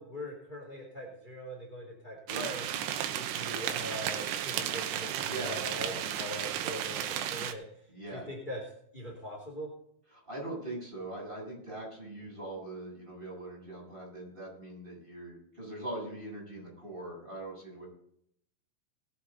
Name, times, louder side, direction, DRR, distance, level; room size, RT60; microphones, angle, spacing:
voice 1, 0.0-2.6 3.1-7.6 8.1-8.6 8.9-9.7, equal, 15° left, -2 dB, 1.8 m, -42 dB
sound 1, 2.3-7.5, right 10 dB, 75° right, 2.9 m, -34 dB
voice 2, 5.3-6.0 7.9-8.3 10.1-17.9, right 2 dB, 10° right, -3 dB, 6.7 m, -41 dB
21.0 x 7.9 x 4.0 m, 0.68 s
omnidirectional pair, 5.3 m